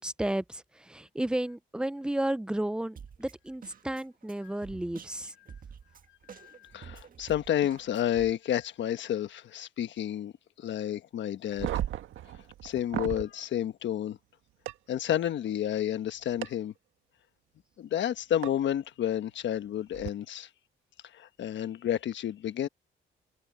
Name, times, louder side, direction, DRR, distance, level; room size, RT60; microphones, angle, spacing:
voice 1, 0.0-5.3, right 1 dB, 5° right, 0.6 m, -33 dB
Drum kit, 3.0-8.3, right 7 dB, 45° right, 1.5 m, -49 dB
voice 2, 6.3-10.3 10.6-11.8 12.6-14.2 14.9-16.7 17.8-20.5 21.1-22.7, left 11 dB, 70° left, 1.3 m, -30 dB
sound 1, 11.5-13.3 14.7-14.8 16.4-16.5 18.4-18.5 19.9-20.1, right 12 dB, 80° right, 1.7 m, -34 dB
cardioid pair, 90°, 20 cm